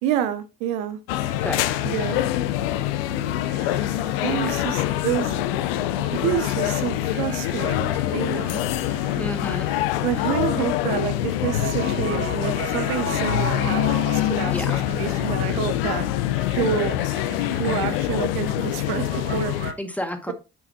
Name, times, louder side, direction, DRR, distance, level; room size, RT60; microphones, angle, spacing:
voice 1, 0.0-1.0 1.8-2.2 4.2-5.4 5.9-8.6 10.0-14.5 14.9-16.1 16.6-17.0 17.5-19.7, right 10 dB, 75° right, 0.9 m, -28 dB
sound 1, 1.1-19.7, left 14 dB, 80° left, 0.6 m, -25 dB
sound 2, 1.2-19.8, right 6 dB, 45° right, 1.2 m, -39 dB
voice 2, 1.4-1.8 4.4-4.5 9.1-9.7 14.5-14.8 19.8-20.3, left 1 dB, 5° left, 1.9 m, -30 dB
9.2 x 5.8 x 2.3 m
hypercardioid pair, 50°, 29 cm